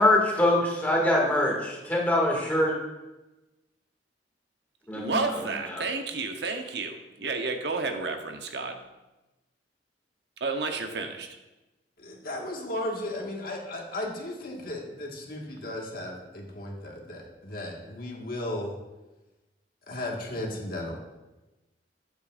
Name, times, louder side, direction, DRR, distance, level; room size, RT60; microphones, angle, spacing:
voice 1, 0.0-2.8 4.9-5.2, left 1 dB, 10° left, -3 dB, 2.1 m, -23 dB
voice 2, 4.9-8.8 10.4-11.4, right 3 dB, 70° right, 5 dB, 0.9 m, -31 dB
voice 3, 12.0-18.7 19.9-21.0, left 1 dB, 55° left, -1 dB, 1.7 m, -35 dB
12.5 x 8.6 x 2.5 m, 1.0 s
head